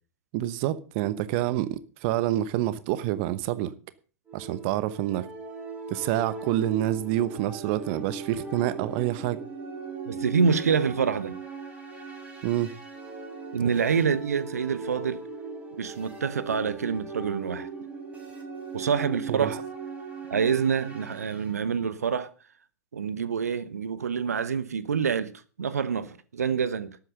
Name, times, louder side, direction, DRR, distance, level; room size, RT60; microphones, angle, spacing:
voice 1, 0.3-3.7 4.3-5.3 5.9-9.4 12.4-12.7 13.7-13.8 19.3-19.5, right 14 dB, 45° right, 1.0 m, -27 dB
sound 1, 4.3-21.5, right 4 dB, 15° right, 6.2 m, -39 dB
voice 2, 10.1-11.4 13.5-15.2 15.8-17.7 18.7-19.6 20.3-22.3 22.9-25.3 25.6-27.0, right 6 dB, 75° right, 1.1 m, -26 dB
12.5 x 9.1 x 6.6 m
figure-of-eight pair, 100°, 9 cm